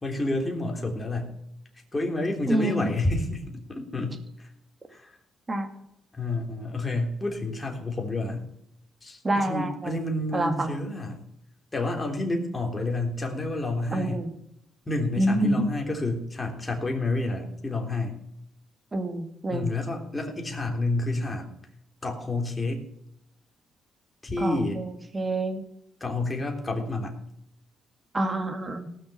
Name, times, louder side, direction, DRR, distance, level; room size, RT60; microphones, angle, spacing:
voice 1, 0.0-1.3 1.9-4.5 4.9-5.2 6.1-8.4 9.0-11.2 11.7-14.2 14.8-18.2 19.5-21.5 22.0-22.8 24.2-24.8 26.0-27.1, left 2 dB, 20° left, 1 dB, 3.3 m, -29 dB
voice 2, 2.5-2.9 5.5-5.7 9.2-10.0 10.3-10.8 13.9-14.3 15.2-15.7 18.9-19.7 24.4-25.6 28.1-28.9, right 1 dB, 25° right, 6 dB, 2.3 m, -27 dB
18.5 x 6.5 x 5.7 m, 0.78 s
cardioid pair, 90°, 0 cm